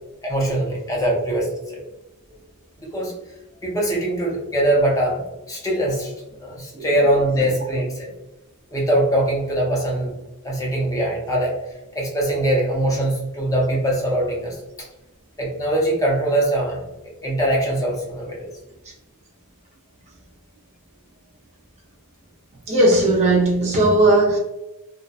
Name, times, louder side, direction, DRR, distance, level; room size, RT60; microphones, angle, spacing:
voice 1, 0.2-1.8 2.8-3.1 3.6-5.2 5.5-6.1 6.4-8.1 8.7-10.1 10.4-11.5 11.9-14.6 15.4-16.8 17.2-18.5, right 1 dB, 15° left, -3 dB, 0.6 m, -22 dB
voice 2, 22.7-24.4, right 1 dB, 30° right, -2 dB, 0.4 m, -17 dB
2.6 x 2.1 x 2.3 m, 0.96 s
head